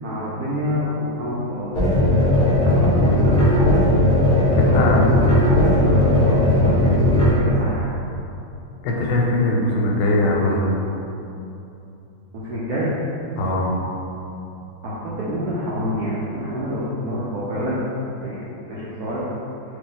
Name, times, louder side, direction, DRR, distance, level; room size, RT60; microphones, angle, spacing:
voice 1, 0.0-1.8 2.6-3.4 4.4-5.3 5.6-7.9 12.3-12.9 14.8-17.7 18.2-19.2, equal, 85° right, -8 dB, 0.8 m, -27 dB
sound 1, 1.7-7.3, left 1 dB, 55° left, 0.5 m, -17 dB
voice 2, 4.6-5.1 8.8-10.7 13.3-13.8, left 2 dB, 90° left, -1 dB, 1.5 m, -20 dB
3.0 x 2.9 x 3.8 m, 2.8 s
omnidirectional pair, 2.3 m